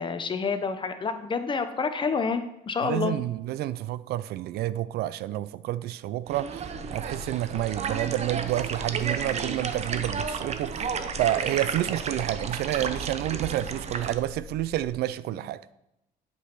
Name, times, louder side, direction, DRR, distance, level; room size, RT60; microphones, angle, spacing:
voice 1, 0.0-3.1 15.3-15.5, left 5 dB, 30° left, 0.9 m, -28 dB
voice 2, 2.8-6.6 6.9-10.9 11.2-15.6, right 14 dB, 75° right, 0.4 m, -29 dB
sound 1, 6.3-14.1, right 6 dB, 40° right, 0.7 m, -32 dB
sound 2, 6.6-14.9, left 6 dB, 55° left, 1.1 m, -45 dB
8.4 x 5.3 x 5.9 m
cardioid pair, 110°, 17 cm